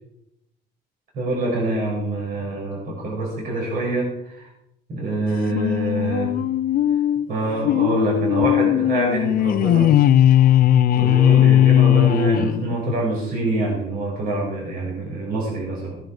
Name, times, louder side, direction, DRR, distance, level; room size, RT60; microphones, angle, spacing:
voice 1, 1.1-4.5 4.9-6.3 7.3-9.9 10.9-16.0, right 2 dB, 60° right, -3 dB, 6.3 m, -25 dB
sound 1, 5.5-13.0, left 11 dB, 60° left, 0.6 m, -18 dB
18.5 x 10.5 x 5.0 m, 0.84 s
cardioid pair, 110°, 17 cm